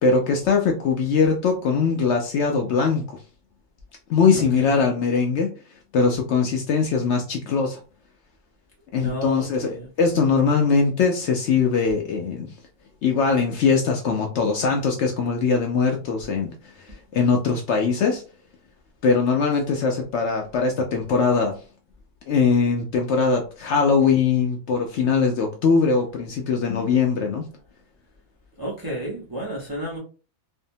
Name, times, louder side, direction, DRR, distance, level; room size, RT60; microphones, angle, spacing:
voice 1, 0.0-3.2 4.1-5.5 5.9-7.8 8.9-12.5 13.0-16.5 17.1-18.2 19.0-21.5 22.3-27.4, left 5 dB, 65° left, 2 dB, 0.7 m, -21 dB
voice 2, 4.3-4.8 9.0-9.9 28.6-30.0, right 1 dB, 25° right, -4 dB, 0.5 m, -32 dB
2.6 x 2.1 x 2.6 m, 0.35 s
omnidirectional pair, 1.4 m